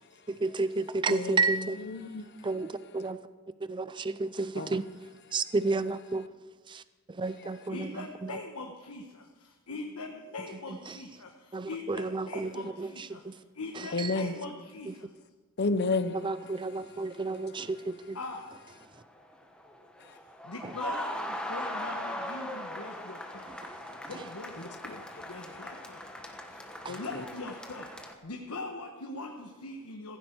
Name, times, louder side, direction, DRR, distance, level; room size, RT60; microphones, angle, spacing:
voice 1, 0.4-1.8 2.4-3.2 3.7-4.8 5.3-6.2 6.7-6.8 7.1-7.9 10.9-11.0 11.5-12.5 12.8-13.4 13.8-14.1 14.9-15.0 16.2-18.2 26.8-27.0, right 3 dB, 20° right, 0.4 m, -31 dB
voice 2, 1.1-2.5 4.6-4.8 13.9-14.3 15.6-16.2 20.1-20.2 24.6-25.2 26.9-27.2, left 3 dB, 50° left, 0.8 m, -32 dB
voice 3, 7.7-15.1 18.1-18.6 20.1-20.2 20.4-23.5 24.0-30.2, left 3 dB, 80° left, 1.2 m, -42 dB
sound 1, 18.8-28.1, left 1 dB, 5° left, 1.3 m, -39 dB
16.0 x 15.5 x 4.6 m
head